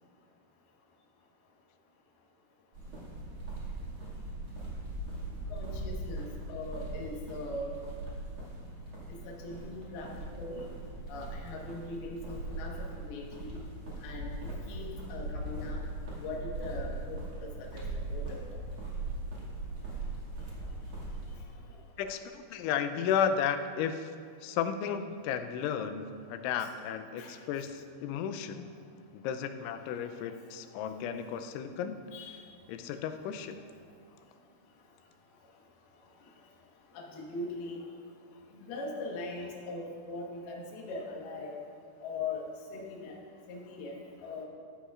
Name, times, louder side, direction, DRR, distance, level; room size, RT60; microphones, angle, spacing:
sound 1, 2.7-21.4, right 2 dB, 40° right, 1.9 m, -40 dB
voice 1, 5.5-7.7 9.2-10.1 10.4-10.6 11.1-13.6 14.0-14.3 14.7-15.8 16.2-17.8 18.1-18.5 27.2-27.3 32.1-32.3 36.9-37.8 38.5-41.6 42.0-42.4 42.7-43.1 43.5-44.0 44.2-44.5, left 3 dB, 65° left, -1 dB, 3.0 m, -40 dB
voice 2, 22.0-24.1 24.4-28.7 29.1-32.0 32.7-33.6, left 8 dB, 90° left, 8 dB, 3.0 m, -33 dB
14.0 x 12.5 x 2.4 m, 2.1 s
omnidirectional pair, 5.3 m